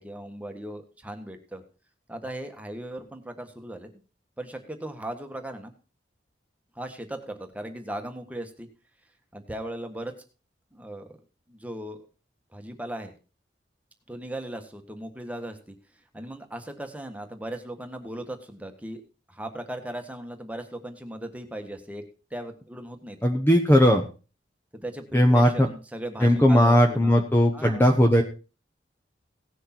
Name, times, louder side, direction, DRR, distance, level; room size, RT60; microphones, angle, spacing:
voice 1, 0.0-1.6 2.1-3.9 4.4-5.7 6.7-8.7 9.3-10.1 10.7-11.2 11.5-12.0 12.5-13.1 14.1-15.7 16.1-19.0 19.3-22.0 22.3-23.2 24.7-27.2 27.5-27.8, right 1 dB, 10° right, 5 dB, 1.5 m, -37 dB
voice 2, 23.2-24.0 25.1-25.7 26.2-28.2, equal, 10° left, 3 dB, 1.0 m, -18 dB
17.5 x 6.5 x 4.4 m, 0.33 s
head